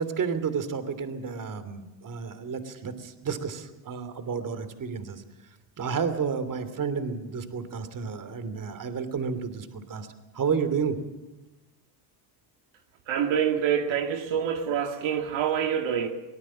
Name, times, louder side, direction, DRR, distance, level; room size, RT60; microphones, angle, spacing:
voice 1, 0.0-5.2 5.8-10.1 10.3-11.0, right 6 dB, 40° right, 12 dB, 3.1 m, -31 dB
voice 2, 13.1-16.1, right 8 dB, 65° right, 4 dB, 2.2 m, -26 dB
24.0 x 19.0 x 7.5 m, 1.0 s
supercardioid pair, 90°, 50 cm